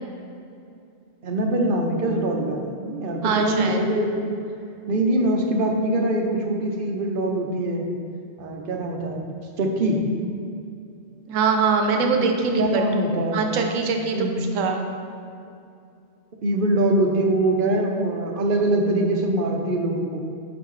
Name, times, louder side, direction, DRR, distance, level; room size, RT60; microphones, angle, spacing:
voice 1, 1.2-4.1 4.9-7.9 8.4-9.2 9.6-10.0 12.2-12.3 12.6-13.5 14.1-14.4 16.4-20.2, right 1 dB, 55° right, 2 dB, 0.7 m, -23 dB
voice 2, 3.2-3.8 11.3-12.8 13.3-14.8, right 4 dB, 90° right, 4 dB, 1.0 m, -22 dB
5.9 x 5.6 x 3.1 m, 2.5 s
omnidirectional pair, 1.3 m